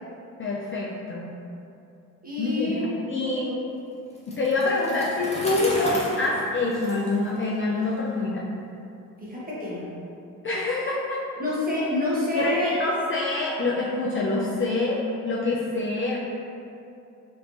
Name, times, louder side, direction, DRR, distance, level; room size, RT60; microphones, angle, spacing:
voice 1, 0.4-1.3 2.4-2.7 3.1-3.4 4.3-8.5 10.4-11.2 12.4-16.2, left 2 dB, 30° left, -5 dB, 0.5 m, -26 dB
voice 2, 2.2-2.9 3.2-3.5 9.2-9.9 11.4-12.7, left 1 dB, 20° right, -8 dB, 1.3 m, -27 dB
Bicycle, 4.1-8.0, equal, 15° left, 1.0 m, -35 dB
3.2 x 3.1 x 2.7 m, 2.7 s
hypercardioid pair, 50°, 41 cm